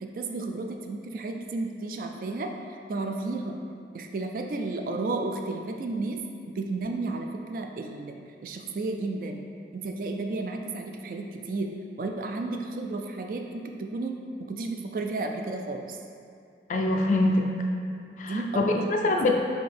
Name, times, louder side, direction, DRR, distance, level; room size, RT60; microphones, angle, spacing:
voice 1, 0.0-2.5 2.9-3.6 3.9-6.2 6.5-8.1 8.4-9.4 9.7-14.2 14.5-16.0 18.3-19.3, right 3 dB, 50° right, 3 dB, 0.3 m, -32 dB
voice 2, 16.7-17.5 18.2-19.3, left 2 dB, 45° left, 2 dB, 0.3 m, -24 dB
4.3 x 3.3 x 3.4 m, 2.5 s
head